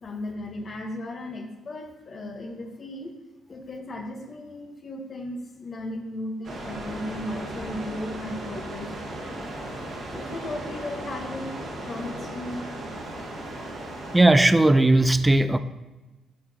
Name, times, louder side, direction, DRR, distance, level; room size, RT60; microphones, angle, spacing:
voice 1, 0.0-3.2 3.5-9.0 10.1-12.7, left 1 dB, 45° left, 1.1 m, -36 dB
sound 1, 6.4-14.2, right 1 dB, 60° right, 1.6 m, -36 dB
voice 2, 14.1-15.6, right 2 dB, 15° right, 0.4 m, -17 dB
12.0 x 4.7 x 2.8 m
cardioid pair, 90°, 0 cm